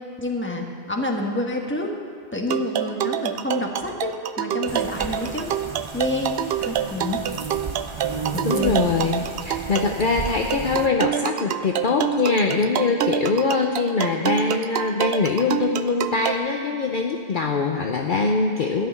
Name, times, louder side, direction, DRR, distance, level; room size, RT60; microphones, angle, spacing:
voice 1, 0.2-1.9 2.3-5.5 5.9-6.3 6.6-7.2 8.3-8.8, left 2 dB, 10° left, 1 dB, 1.3 m, -28 dB
sound 1, 2.5-16.3, right 9 dB, 65° right, 0.7 m, -27 dB
sound 2, 4.7-10.9, right 4 dB, 30° right, 0.6 m, -34 dB
voice 2, 8.4-18.9, left 4 dB, 50° left, 2 dB, 0.8 m, -23 dB
13.0 x 6.7 x 9.6 m, 2.3 s
omnidirectional pair, 1.1 m